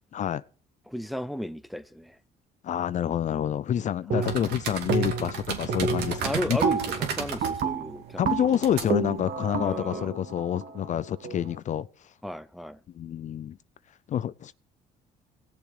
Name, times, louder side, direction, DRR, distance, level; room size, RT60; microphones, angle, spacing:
voice 1, 0.1-0.4 2.6-6.6 8.2-11.9 12.9-13.6 14.1-14.5, left 10 dB, 45° left, 0.5 m, -28 dB
voice 2, 0.9-2.2 4.1-4.4 6.2-8.3 9.6-10.1 12.2-12.8, left 1 dB, ahead, 0.7 m, -34 dB
sound 1, 4.1-4.6 4.9-5.4 5.7-11.5, right 5 dB, 55° right, 1.7 m, -30 dB
sound 2, 4.2-9.8, right 7 dB, 80° right, 2.6 m, -35 dB
18.0 x 7.1 x 4.8 m
cardioid pair, 110°, 17 cm